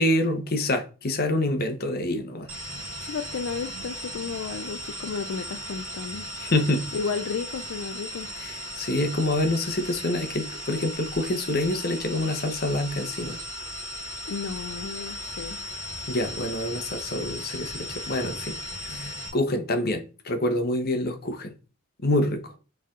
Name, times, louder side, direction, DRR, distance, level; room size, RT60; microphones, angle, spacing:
voice 1, 0.0-2.5 6.4-6.9 8.4-13.4 16.1-21.5 22.0-22.5, left 1 dB, 45° left, 0.8 m, -27 dB
sound 1, 2.5-19.3, equal, 70° right, 1.1 m, -37 dB
voice 2, 3.0-6.3 6.9-8.3 14.3-15.6, left 5 dB, 60° left, 0.4 m, -33 dB
4.4 x 3.3 x 3.7 m
head